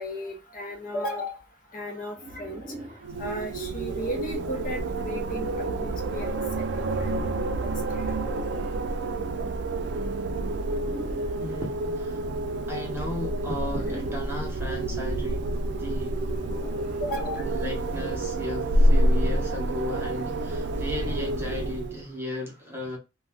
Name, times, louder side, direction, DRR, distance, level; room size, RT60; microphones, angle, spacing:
voice 1, 0.0-1.4 1.7-2.6 3.2-5.5 5.8-6.3 6.8-8.1 17.0-17.4, left 1 dB, 45° left, 0.7 m, -35 dB
sound 1, 2.2-3.1 5.1-6.1 7.8-8.8 10.5-11.5 13.4-14.4 16.1-17.1 18.7-19.8, equal, 50° right, 0.8 m, -42 dB
Wind, 3.0-22.0, right 1 dB, 65° right, 0.4 m, -28 dB
voice 2, 11.4-12.2 12.7-16.2 17.4-23.0, left 1 dB, 15° right, 0.8 m, -35 dB
2.4 x 2.2 x 3.4 m
head